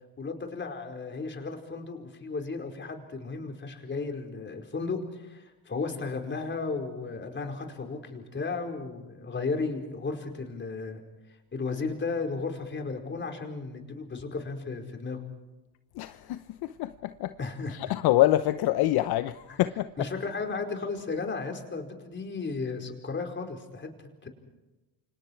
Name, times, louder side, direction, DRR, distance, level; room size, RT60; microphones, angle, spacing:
voice 1, 0.2-11.0 11.5-15.2 17.4-17.8 20.0-23.9 24.2-24.3, left 4 dB, 25° left, 4.8 m, -34 dB
voice 2, 15.9-17.4 17.7-20.1, left 15 dB, 60° left, 1.0 m, -26 dB
29.5 x 26.0 x 4.7 m
cardioid pair, 110°, 42 cm